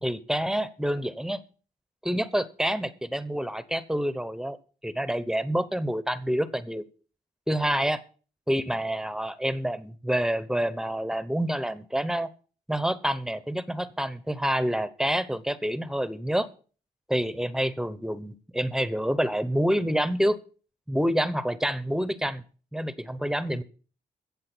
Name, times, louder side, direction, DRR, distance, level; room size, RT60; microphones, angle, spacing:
voice 1, 0.0-1.4 2.0-4.6 4.8-6.8 7.5-8.0 8.5-12.3 12.7-16.5 17.1-20.4 20.9-22.4 22.7-23.6, equal, 5° right, 15 dB, 0.9 m, -27 dB
15.5 x 7.5 x 6.1 m, 0.40 s
cardioid pair, 105°, 16 cm